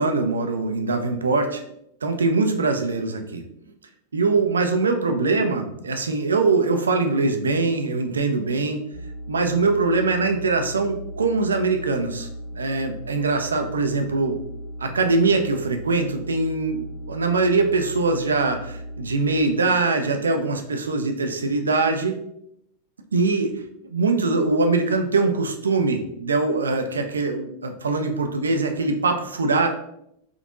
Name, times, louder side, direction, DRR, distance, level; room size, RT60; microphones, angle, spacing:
voice 1, 0.0-1.6 2.0-3.4 4.1-8.8 9.3-14.4 14.8-22.2 23.1-23.6 23.9-29.7, right 3 dB, 70° right, 5 dB, 0.4 m, -22 dB
sound 1, 8.9-19.4, equal, 50° left, 1.1 m, -37 dB
3.6 x 2.8 x 2.5 m, 0.77 s
figure-of-eight pair, 90°, 0 cm